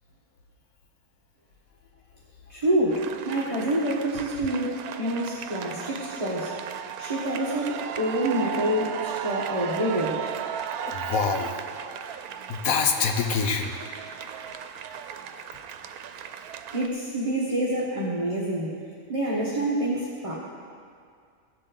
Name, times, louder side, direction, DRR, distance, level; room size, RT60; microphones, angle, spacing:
voice 1, 2.5-6.5 7.0-10.3 16.7-18.7 19.1-20.3, right 1 dB, 25° right, -6 dB, 1.3 m, -27 dB
sound 1, 2.9-16.9, right 8 dB, 85° right, 1.1 m, -36 dB
voice 2, 10.9-11.7 12.5-13.7, left 5 dB, 75° left, 5 dB, 1.3 m, -25 dB
17.0 x 7.5 x 3.9 m, 2.2 s
omnidirectional pair, 1.5 m